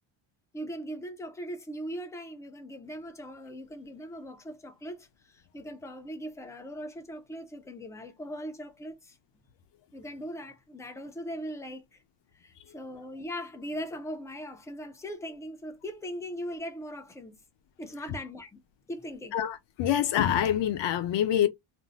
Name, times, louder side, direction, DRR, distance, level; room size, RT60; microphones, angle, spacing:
voice 1, 0.5-9.2 9.9-12.0 12.3-17.4 17.8-18.6 18.9-19.4, equal, 5° left, 0.3 m, -40 dB
voice 2, 19.3-21.5, left 10 dB, 60° left, 0.6 m, -26 dB
2.5 x 2.0 x 3.9 m
cardioid pair, 165°, 49 cm